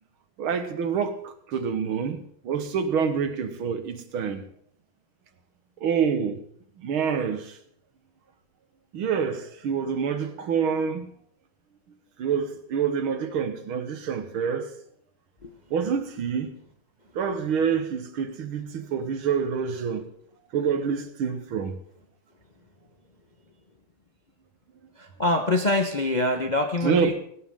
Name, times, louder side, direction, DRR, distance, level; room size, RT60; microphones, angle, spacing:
voice 1, 0.4-4.4 5.8-6.5 6.8-7.6 8.9-11.1 12.2-14.8 15.7-16.5 17.2-20.1 20.5-21.8 26.8-27.1, right 6 dB, 75° right, 2.2 m, -27 dB
voice 2, 25.0-27.1, left 2 dB, 30° left, 0.9 m, -25 dB
17.5 x 17.5 x 3.7 m
omnidirectional pair, 2.3 m